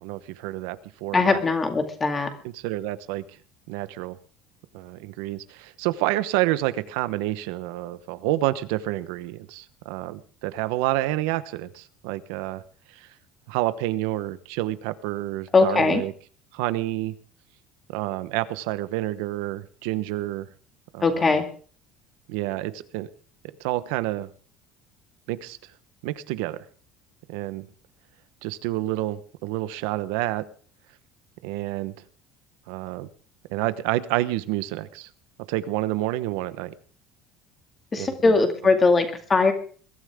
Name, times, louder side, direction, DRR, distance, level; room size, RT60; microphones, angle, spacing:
voice 1, 0.0-1.4 2.4-3.2 3.7-4.2 4.7-12.6 13.0-13.1 13.5-16.1 16.5-17.1 17.9-20.5 20.9-21.4 22.3-23.1 23.6-24.3 25.3-25.6 26.0-26.6 27.3-27.7 28.4-30.4 31.4-31.9 32.7-33.1 33.5-35.1 35.5-36.7 38.0-38.4, right 16 dB, 90° right, 14 dB, 1.0 m, -28 dB
voice 2, 1.1-2.3 15.5-16.0 21.0-21.4 37.9-39.5, left 4 dB, 20° left, 6 dB, 2.3 m, -20 dB
22.0 x 13.0 x 3.6 m, 0.42 s
cardioid pair, 165°, 0 cm